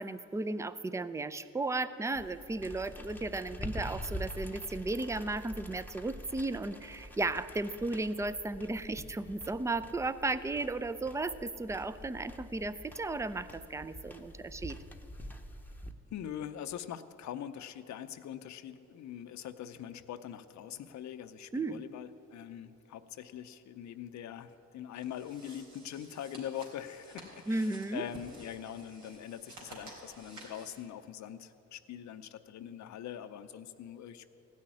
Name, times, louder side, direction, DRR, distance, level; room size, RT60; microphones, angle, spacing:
voice 1, 0.0-14.8 21.5-21.8 27.5-28.0, right 2 dB, 10° right, 14 dB, 0.5 m, -35 dB
sound 1, 2.1-15.9, equal, 5° left, 0.9 m, -46 dB
voice 2, 16.1-34.2, left 10 dB, 65° left, 10 dB, 0.7 m, -43 dB
sound 2, 24.9-30.8, right 2 dB, 80° right, 3.7 m, -52 dB
16.0 x 6.4 x 9.7 m, 2.8 s
cardioid pair, 90°, 30 cm